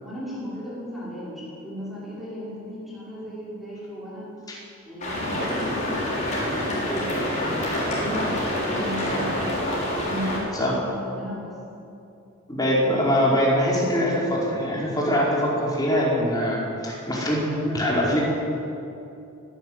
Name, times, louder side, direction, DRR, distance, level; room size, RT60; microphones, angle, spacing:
voice 1, 0.0-4.3 4.8-11.6, equal, ahead, -8 dB, 5.8 m, -35 dB
sound 1, 5.0-10.4, left 1 dB, 35° left, 6.7 m, -27 dB
voice 2, 12.5-18.2, equal, 20° left, -4 dB, 4.8 m, -23 dB
24.0 x 11.5 x 9.3 m, 2.7 s
head